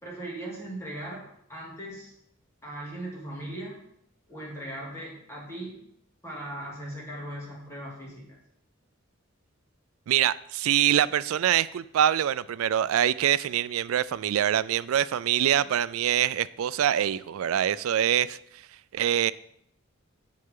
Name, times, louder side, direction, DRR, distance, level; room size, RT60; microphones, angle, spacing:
voice 1, 0.0-2.1 2.6-3.8 4.3-5.8 6.2-8.4, right 1 dB, 15° left, 2.5 m, -38 dB
voice 2, 10.1-18.4 18.9-19.3, right 10 dB, 85° right, 0.3 m, -24 dB
9.5 x 7.7 x 3.7 m
head